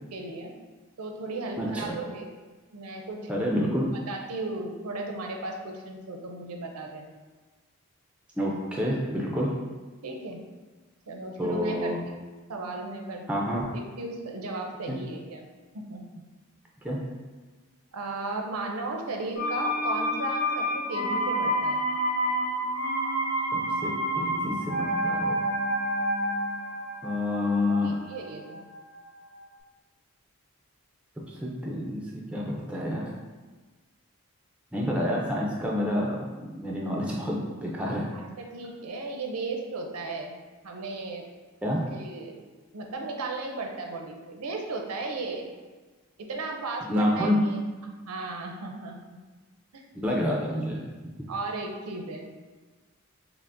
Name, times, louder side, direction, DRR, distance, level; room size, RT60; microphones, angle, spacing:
voice 1, 0.1-0.5 1.0-2.2 2.7-3.3 4.1-7.1 10.0-10.4 11.1-11.9 12.5-13.4 13.7-15.5 15.7-16.2 17.9-21.8 27.7-28.6 38.1-40.4 40.6-41.3 41.9-42.3 42.7-45.5 46.2-47.6 47.8-49.0 49.7-49.8 51.3-52.3, right 3 dB, 85° right, 2 dB, 0.5 m, -35 dB
voice 2, 3.3-3.9 8.4-9.5 11.4-12.0 13.3-13.7 14.9-15.0 16.8-17.0 23.5-25.4 27.0-28.0 31.3-33.0 34.7-38.1 41.6-41.8 46.9-47.4 50.0-50.8, left 1 dB, 5° right, -3 dB, 0.4 m, -28 dB
sound 1, 19.4-29.1 29.4-29.5, equal, 70° left, 0.7 m, -29 dB
5.5 x 2.0 x 2.5 m, 1.3 s
head